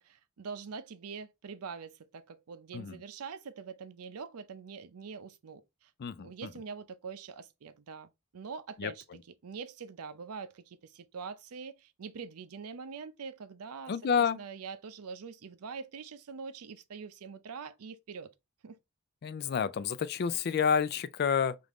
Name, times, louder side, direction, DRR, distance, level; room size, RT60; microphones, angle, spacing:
voice 1, 0.0-5.9 6.2-9.0 9.4-18.3 18.6-18.8, right 5 dB, 90° right, 0.5 m, -44 dB
voice 2, 6.0-6.5 8.8-8.9 13.9-14.4 19.2-21.6, left 7 dB, 50° left, 0.3 m, -29 dB
5.1 x 2.5 x 3.0 m
head